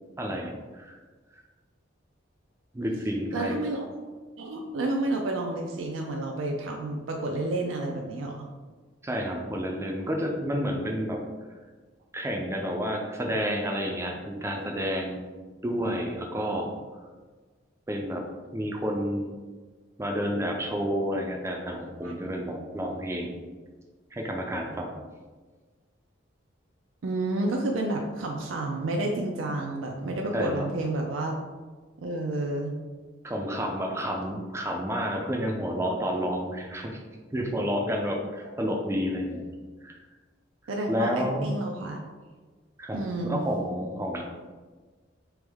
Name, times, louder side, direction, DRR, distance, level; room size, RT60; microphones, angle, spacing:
voice 1, 0.2-1.0 2.7-3.6 9.0-11.2 12.1-15.3 15.6-16.7 17.9-18.2 18.5-19.3 20.0-23.4 24.1-25.0 30.3-30.7 33.2-37.0 37.3-40.0 40.9-41.6 42.8-44.2, equal, 15° right, 1 dB, 0.4 m, -30 dB
voice 2, 3.3-4.0 4.4-8.5 22.0-22.1 27.0-31.3 32.0-32.7 40.7-42.0 42.9-43.4, right 2 dB, 85° right, 1 dB, 0.4 m, -30 dB
3.5 x 3.0 x 3.4 m, 1.4 s
head